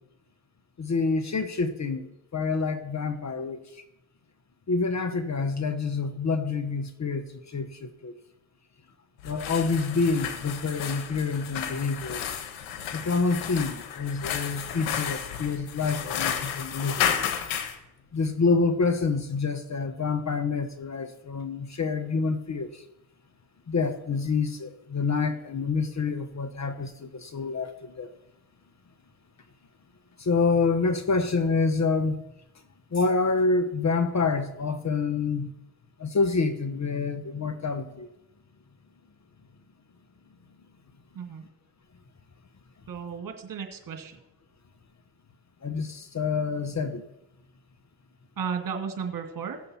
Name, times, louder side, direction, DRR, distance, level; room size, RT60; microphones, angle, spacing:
voice 1, 0.8-3.8 4.7-8.1 9.2-12.2 12.9-17.2 18.1-22.8 23.7-28.1 30.2-32.2 32.9-35.5 36.0-38.1 45.6-47.1, left 4 dB, 35° left, 11 dB, 1.1 m, -27 dB
sound 1, 9.2-17.8, left 9 dB, 85° left, 1.2 m, -32 dB
voice 2, 42.9-44.2 48.4-49.6, right 6 dB, 45° right, 4 dB, 2.3 m, -34 dB
17.0 x 6.7 x 4.3 m, 0.88 s
supercardioid pair, 60°, 46 cm